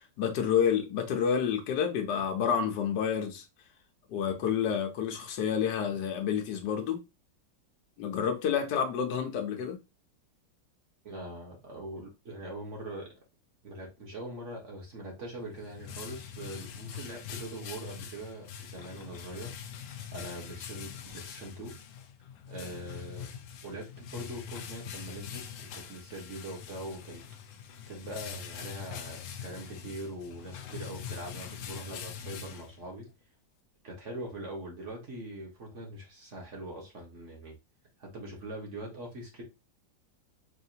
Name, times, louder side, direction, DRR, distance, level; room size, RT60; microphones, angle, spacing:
voice 1, 0.2-3.4 4.1-7.0 8.0-9.8, left 7 dB, 70° left, 1.5 m, -29 dB
voice 2, 11.0-13.1 13.6-19.6 20.1-21.7 22.5-23.3 23.6-27.2 27.9-33.0 33.8-37.5 38.0-39.4, right 1 dB, 45° right, 1.5 m, -42 dB
sound 1, 15.3-33.1, left 8 dB, 85° left, 0.6 m, -43 dB
5.0 x 2.7 x 2.8 m
omnidirectional pair, 2.0 m